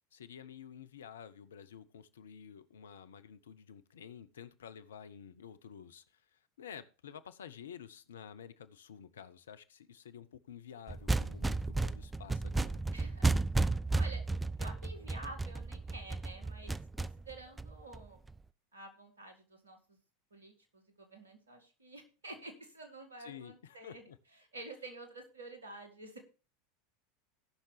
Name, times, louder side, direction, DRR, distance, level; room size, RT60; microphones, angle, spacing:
voice 1, 0.1-12.8 23.2-24.2, left 8 dB, 70° left, 14 dB, 0.7 m, -51 dB
sound 1, 10.9-18.3, right 3 dB, 10° right, 0.4 m, -33 dB
voice 2, 12.9-13.3 13.6-14.2 14.6-18.2 18.7-20.0 20.3-24.0 24.5-26.2, right 2 dB, 80° right, 6 dB, 1.8 m, -50 dB
17.5 x 5.8 x 3.2 m, 0.34 s
figure-of-eight pair, 80°, 0 cm